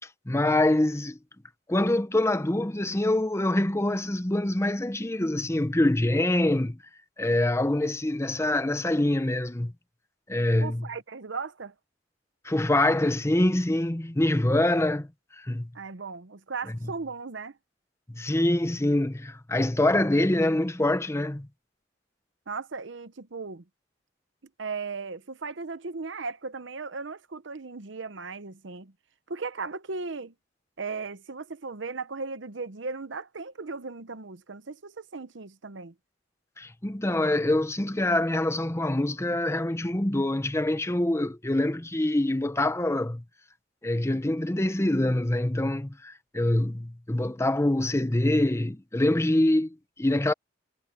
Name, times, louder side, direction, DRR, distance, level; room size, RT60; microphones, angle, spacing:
voice 1, 0.3-1.2 1.7-6.8 7.2-9.7 10.3-10.9 12.4-15.1 15.3-15.7 18.1-21.5 36.6-43.2 43.8-50.3, left 1 dB, 15° left, 0.8 m, -25 dB
voice 2, 10.6-11.7 15.7-17.6 22.5-23.6 24.6-28.9 29.3-30.3 30.8-35.9, right 4 dB, 70° right, 0.9 m, -37 dB
head